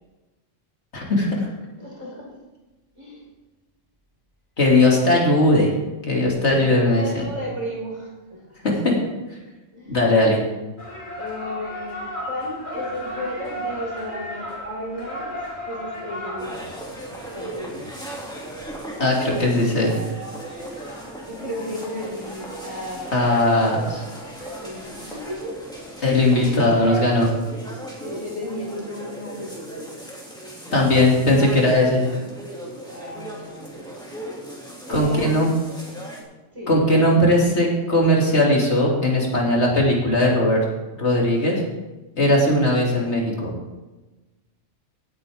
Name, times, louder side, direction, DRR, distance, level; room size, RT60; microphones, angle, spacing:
voice 1, 0.9-1.5 4.6-5.7 6.1-7.3 8.6-9.0 9.9-10.4 19.0-20.0 23.1-24.0 26.0-27.3 30.7-32.0 34.9-35.5 36.7-40.6 41.0-41.6 42.1-43.5, left 1 dB, 60° left, -2 dB, 2.9 m, -18 dB
voice 2, 1.8-2.3 3.0-3.2 4.9-5.0 6.4-8.6 9.7-10.0 11.2-15.3 15.6-16.7 17.3-17.8 21.3-23.2 24.6-25.6 25.9-26.2 26.5-26.6 28.0-29.9 32.9-33.8 34.8-35.4 36.5-37.0, left 1 dB, 25° right, -4 dB, 4.5 m, -34 dB
sound 1, 10.8-27.0, equal, 40° left, 2.9 m, -37 dB
sound 2, 16.4-36.2, right 1 dB, 5° left, 2.4 m, -37 dB
17.0 x 8.7 x 3.6 m, 1.1 s
omnidirectional pair, 1.3 m